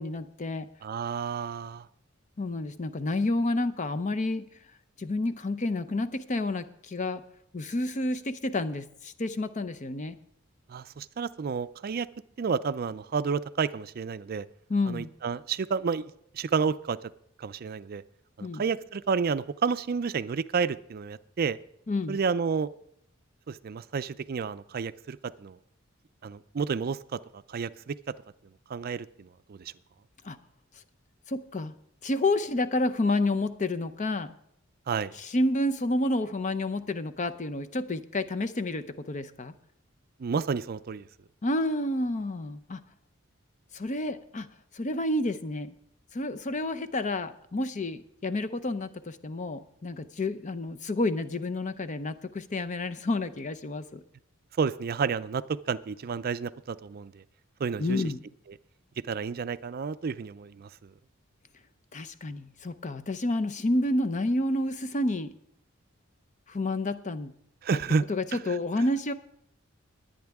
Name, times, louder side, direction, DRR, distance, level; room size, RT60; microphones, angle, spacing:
voice 1, 0.0-0.7 2.4-4.4 5.0-7.2 7.5-10.2 14.7-15.1 18.4-18.6 21.9-22.2 30.2-30.4 31.3-31.7 32.0-34.4 35.1-39.5 41.4-42.8 43.7-44.5 44.7-45.7 46.1-54.0 57.8-58.2 61.9-65.3 66.5-67.3 68.1-69.1, left 2 dB, 35° left, 12 dB, 0.6 m, -29 dB
voice 2, 0.8-1.9 10.7-12.1 12.4-14.5 14.9-17.0 17.4-18.0 18.4-21.6 22.1-22.7 23.5-25.6 26.2-28.1 28.7-29.7 34.9-35.1 40.2-41.1 54.6-57.2 57.6-58.0 59.1-60.9 67.6-68.0 68.3-68.4, right 5 dB, 50° right, 15 dB, 0.4 m, -30 dB
21.5 x 8.7 x 3.5 m, 0.72 s
head